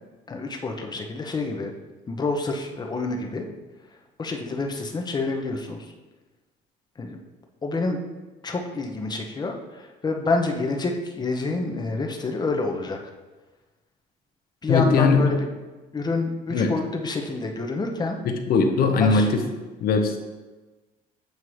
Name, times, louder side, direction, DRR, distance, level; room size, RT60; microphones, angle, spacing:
voice 1, 0.3-1.7 2.1-3.5 4.2-5.9 7.0-7.2 7.6-8.0 8.4-13.0 14.6-15.5 15.9-18.2 19.0-19.3, left 3 dB, 25° left, 3 dB, 0.7 m, -27 dB
voice 2, 14.7-15.4 16.5-16.7 18.2-19.4 19.8-20.2, left 4 dB, 60° left, 6 dB, 0.8 m, -20 dB
7.8 x 2.7 x 4.7 m, 1.2 s
cardioid pair, 110°, 17 cm